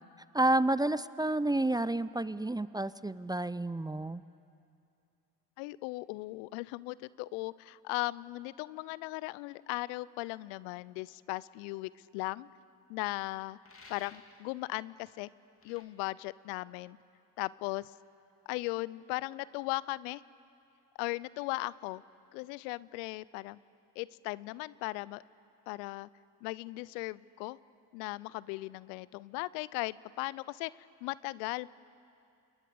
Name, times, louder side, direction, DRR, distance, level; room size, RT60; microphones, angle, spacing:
voice 1, 0.3-4.2, right 1 dB, 10° right, 16 dB, 0.5 m, -30 dB
voice 2, 5.6-12.5 12.9-13.6 13.9-15.3 15.6-17.0 17.4-17.9 18.5-20.2 21.0-22.0 22.3-23.6 24.0-25.2 25.7-26.1 26.4-27.6 27.9-30.7 31.0-31.7, left 21 dB, 80° left, 21 dB, 0.6 m, -37 dB
sound 1, 13.6-14.4 15.6-15.8, left 3 dB, 30° left, 2.9 m, -54 dB
28.0 x 21.5 x 6.9 m, 2.6 s
hypercardioid pair, 55°, 47 cm